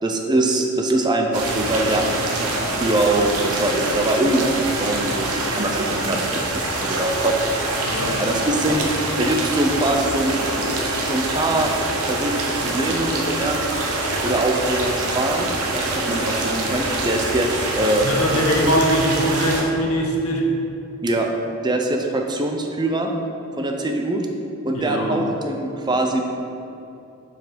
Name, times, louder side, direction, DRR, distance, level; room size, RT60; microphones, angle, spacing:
voice 1, 0.0-4.5 4.8-7.3 7.6-7.8 8.2-8.9 9.2-11.7 12.0-13.6 14.2-17.5 17.8-18.1 18.3-18.7 21.0-21.3 21.6-23.1 23.6-24.3 24.6-26.3, right 1 dB, 20° right, 2 dB, 0.5 m, -23 dB
sound 1, 1.3-19.6, right 2 dB, 90° right, 1.0 m, -25 dB
voice 2, 7.8-8.2 18.0-20.5 24.7-25.2, equal, 75° left, 0 dB, 1.0 m, -22 dB
5.8 x 4.7 x 5.1 m, 2.7 s
head